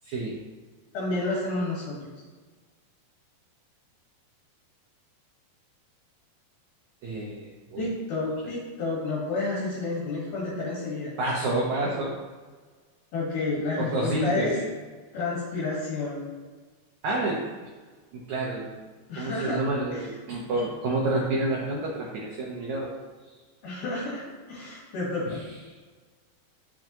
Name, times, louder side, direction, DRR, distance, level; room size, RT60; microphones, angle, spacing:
voice 1, 0.0-0.4 7.0-7.9 11.2-12.2 13.8-14.6 17.0-17.7 18.1-18.8 19.2-22.9 25.3-25.4, right 2 dB, 80° right, -4 dB, 1.7 m, -29 dB
voice 2, 0.9-2.0 7.8-11.1 13.1-14.6 15.1-16.2 19.1-19.6 19.9-20.1 23.6-25.3, left 3 dB, 65° left, -7 dB, 3.5 m, -30 dB
8.9 x 6.9 x 3.0 m, 1.4 s
omnidirectional pair, 4.8 m